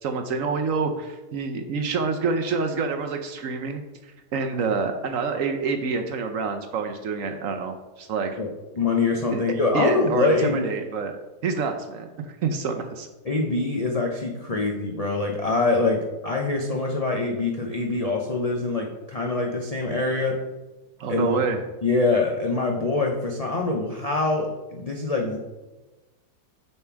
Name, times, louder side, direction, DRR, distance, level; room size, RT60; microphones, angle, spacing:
voice 1, 0.0-8.3 9.3-9.4 9.7-11.2 11.4-13.1 21.0-21.6, right 4 dB, 65° right, 6 dB, 0.9 m, -27 dB
voice 2, 8.7-10.6 13.2-20.4 21.1-21.3 21.8-25.4, left 3 dB, 55° left, 0 dB, 0.4 m, -24 dB
6.9 x 4.3 x 4.6 m, 1.1 s
omnidirectional pair, 1.7 m